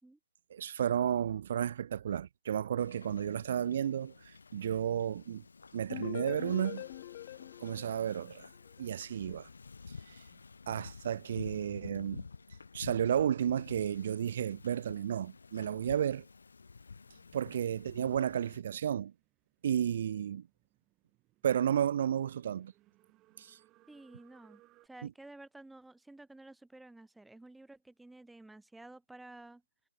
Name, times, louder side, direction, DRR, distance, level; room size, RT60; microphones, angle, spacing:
voice 1, 0.5-5.4 5.7-6.8 7.6-8.5 8.8-9.5 10.1-10.2 10.7-12.2 12.7-16.2 17.3-19.1 19.6-20.5 21.4-22.7 23.4-23.6 25.0-25.1, right 9 dB, 50° right, 0.7 m, -32 dB
Wind / Ocean, 2.8-18.6, left 4 dB, 75° left, 3.7 m, -50 dB
sound 1, 5.9-8.8, left 14 dB, 35° left, 2.3 m, -43 dB
sound 2, 16.9-24.9, right 17 dB, 20° right, 4.8 m, -69 dB
voice 2, 23.9-29.6, right 2 dB, 5° right, 3.7 m, -53 dB
hypercardioid pair, 150°, 0 cm